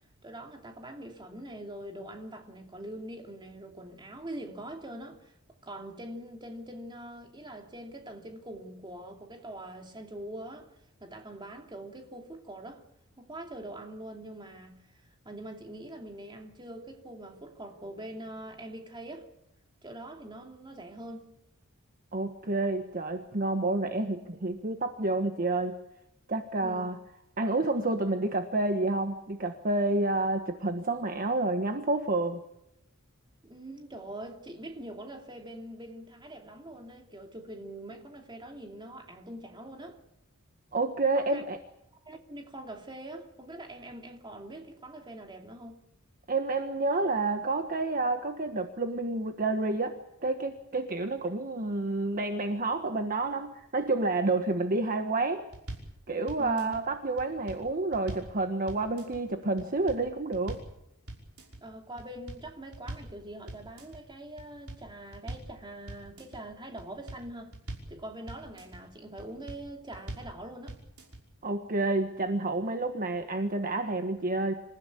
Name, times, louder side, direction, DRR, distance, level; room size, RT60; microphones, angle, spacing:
voice 1, 0.2-5.3 5.6-10.7 11.0-12.8 13.2-14.8 15.2-19.3 19.8-21.3 26.6-26.9 33.4-40.0 41.1-41.4 42.0-45.8 56.4-56.8 61.6-67.5 67.9-70.8, right 1 dB, 20° right, 2.9 m, -43 dB
voice 2, 22.1-25.7 26.3-27.0 27.4-32.4 40.7-41.6 46.3-50.0 50.2-55.5 56.1-60.6 71.4-74.5, right 2 dB, 40° right, 1.4 m, -29 dB
sound 1, 55.5-55.9 56.3-56.8 57.2-58.3 58.7-59.2 59.6-60.0 60.3-60.7 61.1-61.6 62.0-63.1 63.5-64.0 64.4-65.5 65.9-66.4 66.8-67.9 68.3-68.8 69.2-69.6 69.9-70.3 70.7-71.2, right 1 dB, 70° right, 5.7 m, -42 dB
27.0 x 15.0 x 8.5 m
head